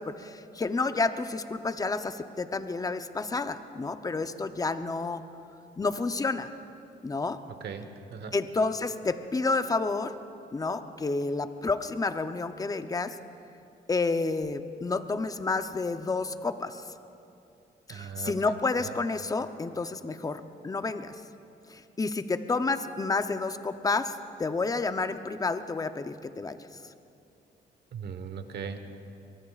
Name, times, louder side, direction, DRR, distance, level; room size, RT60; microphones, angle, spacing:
voice 1, 0.0-5.2 5.8-6.5 7.0-7.4 8.3-10.1 10.5-13.2 13.9-16.8 17.9-21.1 21.7-26.6, left 3 dB, 20° left, 10 dB, 0.7 m, -30 dB
voice 2, 7.6-8.4 17.9-19.0 27.9-28.9, right 6 dB, 65° right, 8 dB, 1.3 m, -39 dB
23.5 x 23.0 x 2.4 m, 2.6 s
cardioid pair, 95°, 18 cm